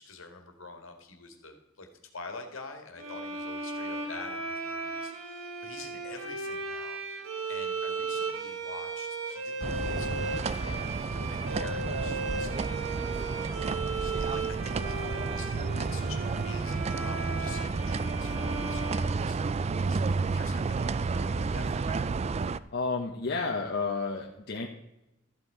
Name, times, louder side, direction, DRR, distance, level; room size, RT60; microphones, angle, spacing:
voice 1, 0.0-22.0, left 4 dB, 70° left, 5 dB, 2.0 m, -47 dB
sound 1, 3.0-19.8, right 3 dB, 70° right, 2.2 m, -36 dB
sound 2, 9.6-22.6, right 4 dB, 30° right, 0.3 m, -31 dB
voice 2, 22.7-24.7, left 4 dB, 50° left, 1 dB, 1.0 m, -31 dB
13.5 x 8.1 x 4.9 m, 0.89 s
head